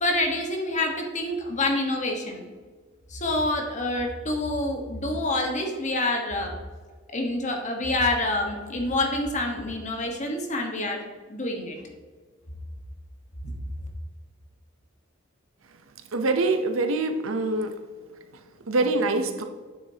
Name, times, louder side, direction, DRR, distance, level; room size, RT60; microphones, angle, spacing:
voice 1, 0.0-2.4 3.1-6.5 7.1-11.0 11.3-11.8, left 2 dB, 35° left, 2 dB, 1.3 m, -27 dB
voice 2, 16.1-17.7 18.7-19.4, right 2 dB, 80° right, 7 dB, 0.8 m, -24 dB
9.1 x 7.3 x 2.9 m, 1.5 s
head